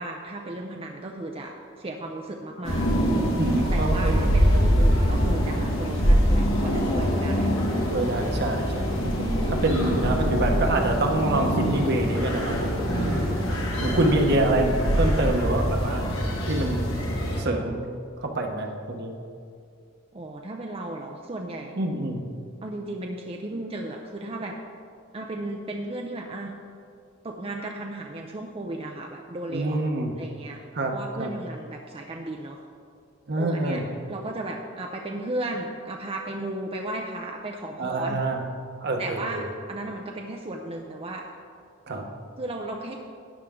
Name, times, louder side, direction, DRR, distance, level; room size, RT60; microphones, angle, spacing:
voice 1, 0.0-2.9 3.7-7.5 13.9-14.1 20.1-21.9 22.6-24.6 25.1-26.6 27.2-29.8 30.2-30.6 30.9-32.6 33.3-33.8 34.1-38.2 39.0-41.3 42.4-43.0, right 2 dB, 30° right, 1 dB, 0.6 m, -35 dB
sound 1, 2.6-17.4, equal, 75° left, 2.0 m, -24 dB
voice 2, 3.3-4.4 7.9-13.2 13.8-16.0 16.5-16.8 17.4-17.8 18.2-19.1 21.8-22.2 29.5-30.1 30.7-31.3 33.3-33.8 37.8-38.4 38.8-39.4 41.9-42.1, right 2 dB, 55° right, 3 dB, 1.2 m, -26 dB
12.5 x 9.1 x 3.7 m, 2.3 s
head